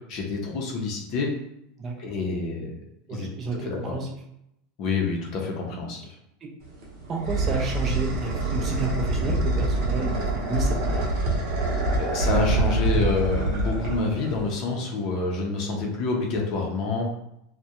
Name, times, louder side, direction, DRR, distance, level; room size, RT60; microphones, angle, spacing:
voice 1, 0.1-1.3 2.0-2.8 3.1-3.3 3.6-4.0 4.8-6.1 12.0-17.1, left 3 dB, 45° left, 0 dB, 0.5 m, -27 dB
voice 2, 3.1-4.1 6.4-6.5 7.1-11.1, right 3 dB, 25° right, -1 dB, 0.4 m, -31 dB
sound 1, 6.6-14.6, right 2 dB, 55° right, 0.8 m, -25 dB
2.3 x 2.1 x 2.8 m, 0.80 s
supercardioid pair, 155°, 0 cm